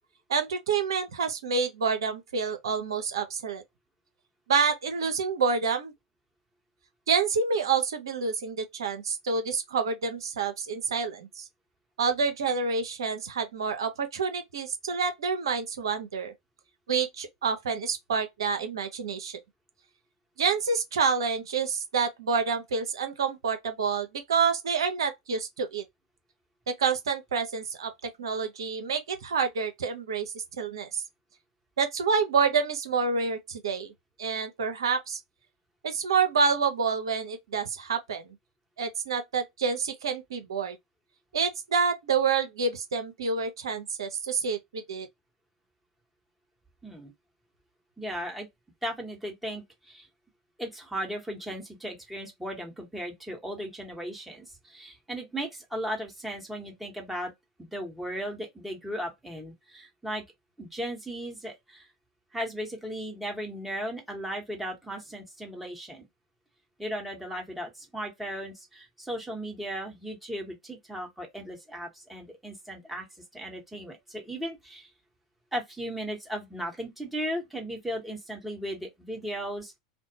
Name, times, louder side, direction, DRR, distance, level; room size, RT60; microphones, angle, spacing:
voice 1, 0.3-3.6 4.5-5.9 7.1-11.5 12.0-16.3 16.9-19.4 20.4-25.8 26.7-27.9 28.2-31.0 31.8-33.9 34.2-35.2 35.8-38.2 38.8-40.8 41.3-45.1, right 5 dB, 70° right, 0.7 m, -28 dB
voice 2, 48.0-48.5 48.8-50.1 50.6-57.3 57.6-60.2 60.6-61.9 62.3-66.0 66.8-73.1 73.3-74.9 75.5-79.8, equal, 5° right, 1.3 m, -36 dB
2.6 x 2.2 x 2.7 m
figure-of-eight pair, 85°, 3 cm